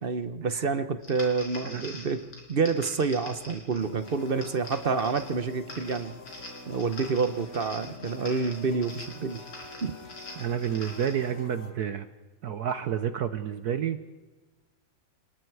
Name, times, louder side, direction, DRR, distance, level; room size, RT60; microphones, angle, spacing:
voice 1, 0.0-6.1 6.7-9.4 9.8-10.0, right 4 dB, 45° right, 11 dB, 0.8 m, -28 dB
sound 1, 1.0-11.3, left 2 dB, 80° left, 5.6 m, -45 dB
sound 2, 3.8-11.7, left 4 dB, 40° left, 2.2 m, -47 dB
voice 2, 10.4-12.1 12.4-14.0, right 9 dB, 60° right, 10 dB, 1.3 m, -30 dB
28.5 x 20.5 x 4.8 m, 1.2 s
omnidirectional pair, 2.1 m